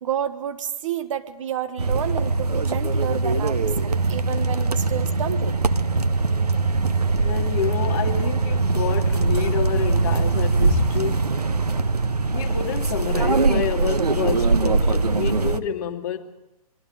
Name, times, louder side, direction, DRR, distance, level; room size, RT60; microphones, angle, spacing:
voice 1, 0.0-5.6, right 10 dB, 55° right, 1.4 m, -30 dB
sound 1, 1.8-15.6, right 3 dB, 90° right, 1.2 m, -22 dB
voice 2, 7.2-11.3 12.3-16.2, left 9 dB, 40° left, 2.6 m, -28 dB
28.0 x 24.0 x 5.1 m
figure-of-eight pair, 125°, 20 cm